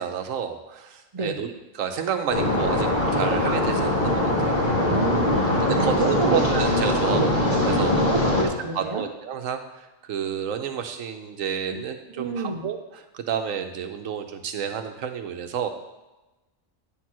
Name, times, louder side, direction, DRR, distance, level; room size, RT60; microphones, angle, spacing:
voice 1, 0.0-4.6 5.6-7.3 7.7-7.9 8.7-15.7, right 8 dB, 75° right, 7 dB, 1.1 m, -30 dB
sound 1, 2.3-8.4, left 1 dB, 35° left, 1.9 m, -22 dB
voice 2, 4.9-6.4 7.1-7.3 8.0-9.0 12.1-12.7, right 3 dB, 40° right, 0 dB, 0.5 m, -29 dB
9.2 x 4.4 x 6.1 m, 1.0 s
omnidirectional pair, 1.4 m